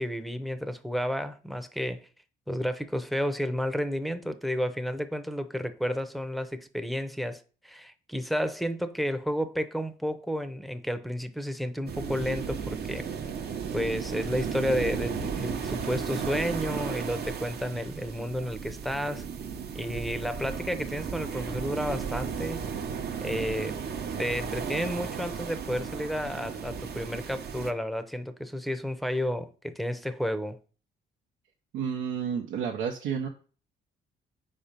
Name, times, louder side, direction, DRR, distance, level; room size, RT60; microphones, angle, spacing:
voice 1, 0.0-2.1 2.5-13.1 13.7-19.3 19.7-22.6 23.2-23.8 24.2-30.6, equal, ahead, 0.6 m, -31 dB
sound 1, 11.9-27.7, right 6 dB, 55° right, 0.8 m, -35 dB
voice 2, 31.7-33.3, right 7 dB, 90° right, 0.8 m, -31 dB
5.0 x 4.3 x 5.1 m
cardioid pair, 90°, 20 cm